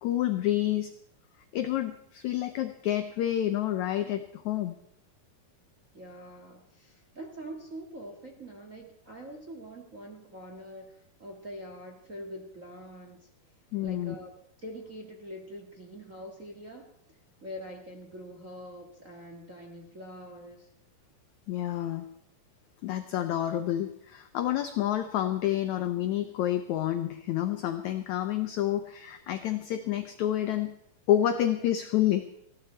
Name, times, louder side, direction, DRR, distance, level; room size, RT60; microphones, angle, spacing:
voice 1, 0.0-0.9 1.5-4.8 13.7-14.1 21.5-22.1 22.8-30.8 31.1-32.3, left 12 dB, 85° left, 9 dB, 1.6 m, -29 dB
voice 2, 5.9-13.3 13.8-16.9 17.4-20.7, equal, 35° right, 1 dB, 1.4 m, -44 dB
20.0 x 15.5 x 4.5 m, 0.75 s
omnidirectional pair, 4.4 m